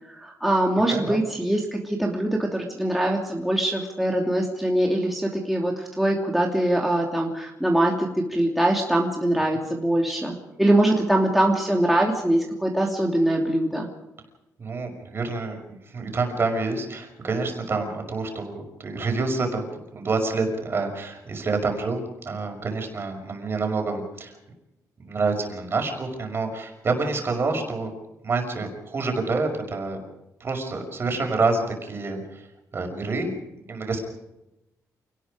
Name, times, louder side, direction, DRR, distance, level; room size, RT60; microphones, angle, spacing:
voice 1, 0.1-13.9, right 1 dB, ahead, -1 dB, 2.9 m, -23 dB
voice 2, 0.9-1.2 14.6-15.6 15.8-19.6 19.9-24.3 25.0-27.9 28.2-30.0 30.4-32.5 32.7-33.3 33.7-34.0, right 3 dB, 40° right, 3 dB, 5.9 m, -27 dB
28.0 x 19.5 x 5.1 m, 0.92 s
cardioid pair, 135°, 6 cm